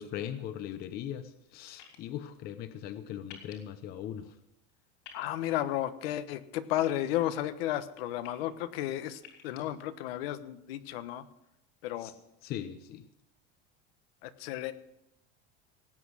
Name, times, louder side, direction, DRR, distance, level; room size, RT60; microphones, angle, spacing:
voice 1, 0.0-4.3 12.0-12.1 12.4-13.0, left 10 dB, 30° left, 11 dB, 0.8 m, -39 dB
sound 1, 1.8-2.0 3.3-3.5 5.0-5.2 6.8-7.4 8.0-8.3 9.2-9.6, left 8 dB, 60° left, 3.5 m, -50 dB
voice 2, 5.1-11.3 11.8-12.1 14.2-14.7, left 13 dB, 75° left, 11 dB, 1.2 m, -33 dB
18.0 x 8.4 x 6.3 m, 0.84 s
cardioid pair, 175°, 30 cm